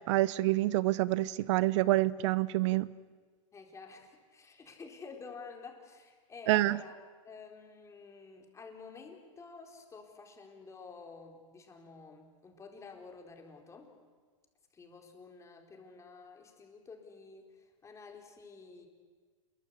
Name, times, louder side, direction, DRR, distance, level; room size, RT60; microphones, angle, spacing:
voice 1, 0.1-2.9 6.5-6.8, right 17 dB, 60° right, 19 dB, 0.7 m, -27 dB
voice 2, 3.5-7.0 7.2-13.9 14.7-18.9, left 4 dB, 15° left, 3 dB, 4.3 m, -50 dB
28.0 x 21.5 x 8.4 m, 1.5 s
supercardioid pair, 135°, 18 cm